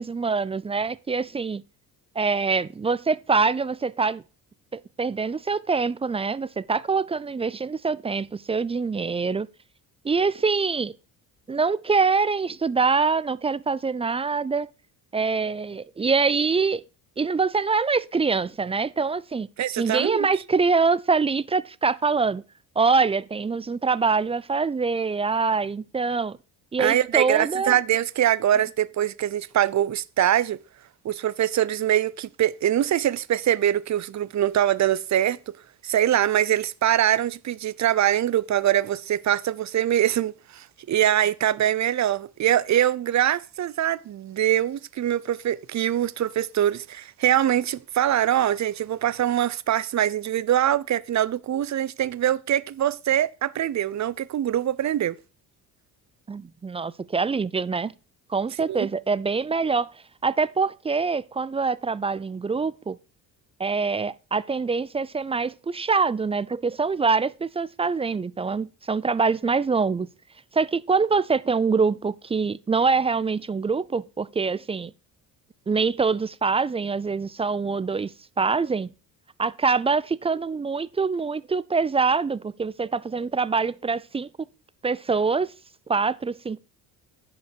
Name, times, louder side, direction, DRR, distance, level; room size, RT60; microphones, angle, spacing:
voice 1, 0.0-1.6 2.2-4.2 4.7-9.5 10.0-10.9 11.5-14.7 15.1-16.8 17.2-19.5 19.8-22.4 22.8-26.4 26.7-27.8 56.3-57.9 58.3-59.9 60.2-63.0 63.6-70.1 70.5-74.9 75.7-78.1 78.4-78.9 79.4-84.3 84.8-85.5 85.9-86.6, right 4 dB, 15° right, 0.3 m, -24 dB
voice 2, 19.6-20.3 26.8-30.6 31.0-35.4 35.8-55.2 58.7-58.9, right 11 dB, 40° right, 0.7 m, -23 dB
10.5 x 5.2 x 4.6 m
supercardioid pair, 70°, 44 cm